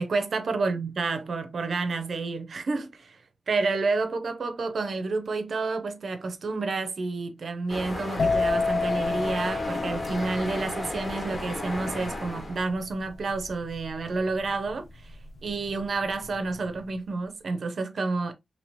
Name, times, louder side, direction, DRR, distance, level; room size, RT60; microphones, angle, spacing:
voice 1, 0.0-3.2 3.5-15.2 15.4-18.3, right 3 dB, 65° right, 0.6 m, -29 dB
sound 1, 7.7-12.7, left 1 dB, 30° left, 1.4 m, -34 dB
sound 2, 8.2-15.8 16.0-16.5, left 4 dB, 70° left, 0.5 m, -30 dB
2.9 x 2.8 x 3.0 m
wide cardioid pair, 95°, 0 cm